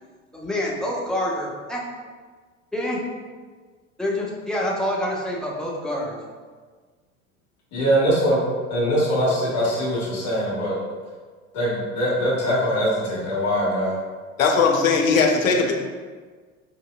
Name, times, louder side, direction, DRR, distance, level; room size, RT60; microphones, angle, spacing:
voice 1, 0.3-1.8 2.7-3.0 4.0-6.2, left 1 dB, ahead, -4 dB, 0.3 m, -27 dB
voice 2, 7.7-8.4 8.7-10.7 11.5-13.9, equal, 40° left, -8 dB, 1.4 m, -22 dB
voice 3, 14.4-15.7, left 4 dB, 75° left, 1 dB, 0.6 m, -18 dB
4.4 x 2.7 x 2.3 m, 1.5 s
figure-of-eight pair, 75°, 40 cm